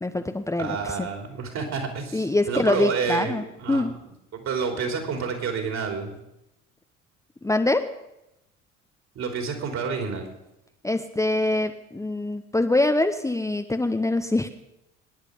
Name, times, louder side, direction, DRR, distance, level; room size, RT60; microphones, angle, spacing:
voice 1, 0.0-1.1 2.1-3.9 7.4-7.8 10.8-14.5, left 2 dB, 10° left, 6 dB, 0.9 m, -24 dB
voice 2, 0.6-3.8 4.3-6.1 9.1-10.3, right 5 dB, 45° right, 4 dB, 3.3 m, -29 dB
23.0 x 10.0 x 5.2 m, 0.89 s
figure-of-eight pair, 60°, 37 cm